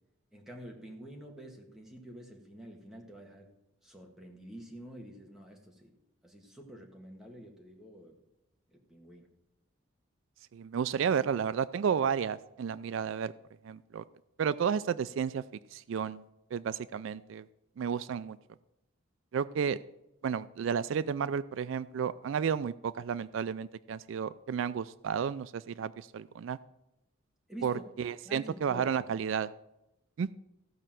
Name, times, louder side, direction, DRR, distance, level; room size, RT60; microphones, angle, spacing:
voice 1, 0.3-3.5 3.8-5.9 6.2-8.2 8.7-9.3 27.5-27.8 28.2-29.1, equal, ahead, 0 dB, 1.8 m, -48 dB
voice 2, 10.5-13.3 13.6-14.0 14.4-15.4 15.7-16.2 16.5-17.4 17.8-18.4 19.3-19.8 20.2-26.6 27.6-29.5 30.2-30.3, right 7 dB, 70° right, 16 dB, 0.3 m, -32 dB
15.0 x 5.5 x 7.5 m, 0.93 s
head